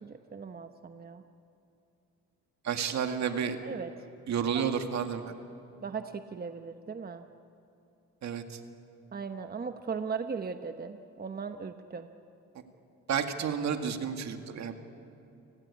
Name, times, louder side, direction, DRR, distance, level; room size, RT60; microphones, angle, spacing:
voice 1, 0.0-1.2 3.6-4.0 4.5-4.7 5.8-7.2 9.1-12.1, right 5 dB, 30° right, 7 dB, 1.1 m, -38 dB
voice 2, 2.6-3.6 4.3-5.3 8.2-8.6 13.1-14.8, right 7 dB, 65° right, 6 dB, 2.2 m, -31 dB
29.5 x 18.5 x 8.5 m, 2.8 s
cardioid pair, 90°, 30 cm